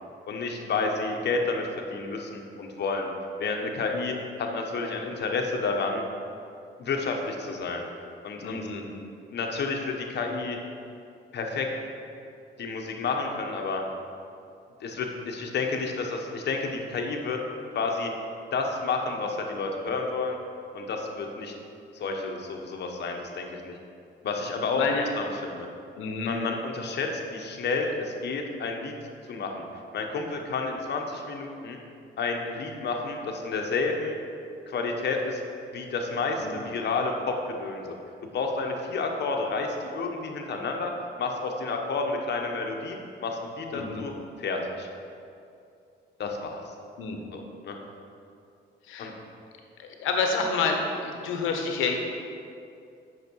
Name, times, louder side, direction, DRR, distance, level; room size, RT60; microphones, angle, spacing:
voice 1, 0.3-3.1 3.4-6.0 6.8-7.8 8.2-8.6 9.3-10.6 11.3-11.7 12.6-13.8 14.8-17.4 17.7-18.1 18.5-20.4 20.7-21.5 21.9-23.7 24.2-24.8 25.2-25.7 26.2-28.9 29.3-29.6 29.9-31.8 32.2-34.2 34.7-35.4 35.7-38.0 38.3-40.9 41.2-43.0 43.2-44.1 44.4-44.9 46.2-46.6 47.3-47.7 49.0-49.1, left 4 dB, 60° left, 2 dB, 1.1 m, -30 dB
voice 2, 8.4-8.8 24.7-25.0 26.0-26.3 36.4-36.6 43.7-44.0 47.0-47.2 48.8-49.1 49.8-52.2, left 4 dB, 90° left, 3 dB, 1.0 m, -29 dB
8.1 x 5.9 x 4.7 m, 2.5 s
cardioid pair, 90°, 20 cm